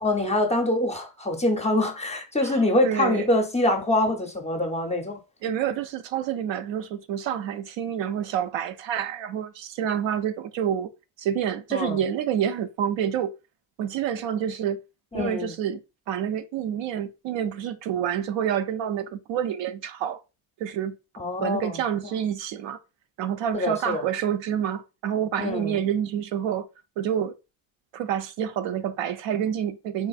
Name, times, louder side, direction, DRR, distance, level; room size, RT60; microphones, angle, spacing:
voice 1, 0.0-5.2 11.7-12.0 15.1-15.5 21.2-21.8 23.5-24.0 25.4-25.8, left 1 dB, 15° left, 0.6 m, -25 dB
voice 2, 2.4-3.3 5.4-10.9 11.2-13.3 13.8-14.8 15.1-15.8 16.1-20.2 20.6-21.0 21.4-22.8 23.2-26.7 27.0-27.3 27.9-30.1, right 9 dB, 65° right, 0.5 m, -28 dB
3.7 x 2.4 x 2.4 m
cardioid pair, 90°, 50 cm